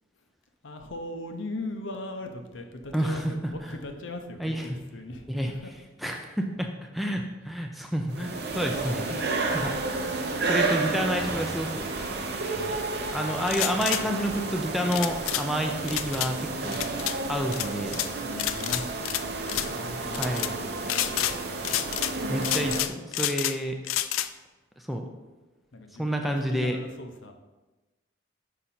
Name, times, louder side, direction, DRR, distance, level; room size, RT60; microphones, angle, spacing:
voice 1, 0.6-5.7 18.2-19.2 19.7-20.4 20.7-20.8 25.7-27.3, left 2 dB, 70° left, 5 dB, 0.7 m, -38 dB
voice 2, 2.9-3.3 3.6-3.7 4.4-4.7 5.3-5.5 6.0-6.7 6.9-9.3 9.5-9.7 10.5-11.8 13.1-16.8 17.3-18.0 20.1-20.6 22.3-23.8 24.8-25.1 26.0-26.8, equal, ahead, 2 dB, 0.4 m, -29 dB
sound 1, 8.1-22.8, right 3 dB, 50° right, 0.7 m, -31 dB
sound 2, 13.4-14.0 14.9-15.4 15.9-16.3 16.7-17.2 17.5-18.1 18.4-19.2 19.5-19.7 20.1-20.5 20.9-21.4 21.6-22.1 22.4-23.6 23.8-24.3, left 13 dB, 90° left, 0.3 m, -29 dB
5.7 x 5.0 x 4.2 m, 1.1 s
head